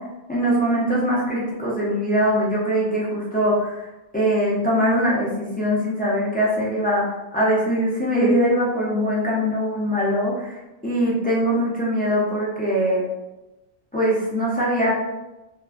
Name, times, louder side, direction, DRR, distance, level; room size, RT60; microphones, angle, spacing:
voice 1, 0.3-3.8 4.1-10.6 10.8-13.0 13.9-15.0, equal, 15° left, -7 dB, 0.3 m, -22 dB
2.5 x 2.1 x 2.3 m, 0.99 s
omnidirectional pair, 1.1 m